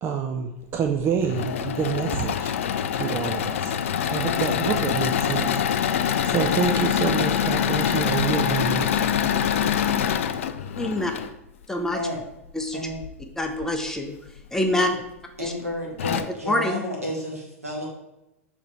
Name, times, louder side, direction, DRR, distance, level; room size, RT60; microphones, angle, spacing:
voice 1, 0.0-2.6 2.9-3.8 4.1-9.2, right 7 dB, 30° right, 4 dB, 0.5 m, -28 dB
Engine / Mechanisms, 1.0-11.3 12.9-13.7 14.3-14.4 14.7-14.8 15.6-15.7 16.0-16.2, left 8 dB, 60° left, 0.4 m, -25 dB
voice 2, 10.8-11.1 11.7-12.0 12.5-12.9 13.4-14.2 14.5-14.9 15.4-15.5 16.5-16.8, left 1 dB, 5° left, 3 dB, 0.7 m, -25 dB
voice 3, 15.4-17.9, left 1 dB, 80° right, -1 dB, 1.8 m, -31 dB
6.7 x 3.3 x 4.3 m, 0.89 s
figure-of-eight pair, 90°, 8 cm